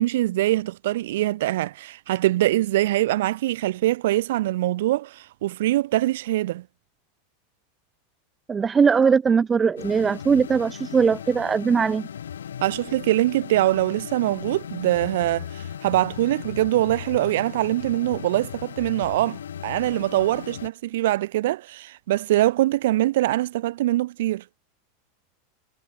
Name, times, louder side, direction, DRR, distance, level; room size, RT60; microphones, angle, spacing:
voice 1, 0.0-6.6 12.6-24.4, right 15 dB, 70° right, 3.5 m, -23 dB
voice 2, 8.5-12.1, right 6 dB, 20° right, 0.9 m, -20 dB
sound 1, 9.8-20.7, left 9 dB, 90° left, 4.8 m, -37 dB
hypercardioid pair, 110°, 0 cm